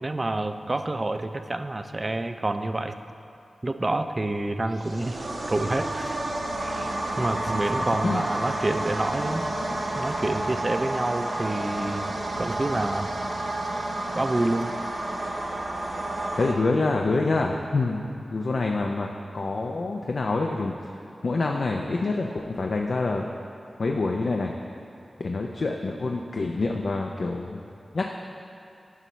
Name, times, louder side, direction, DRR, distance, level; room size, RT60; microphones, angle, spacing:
voice 1, 0.0-2.9 3.6-6.2 6.6-9.4 10.0-12.1 12.4-13.1 14.1-14.7, right 2 dB, 40° right, 8 dB, 0.4 m, -28 dB
sound 1, 4.7-16.5, right 1 dB, 70° right, 0.8 m, -30 dB
voice 2, 16.3-19.1 19.3-23.3 23.8-24.5 25.2-27.6 27.9-28.0, left 3 dB, 70° left, 1 dB, 0.4 m, -26 dB
11.0 x 5.5 x 3.1 m, 2.5 s
cardioid pair, 45°, 0 cm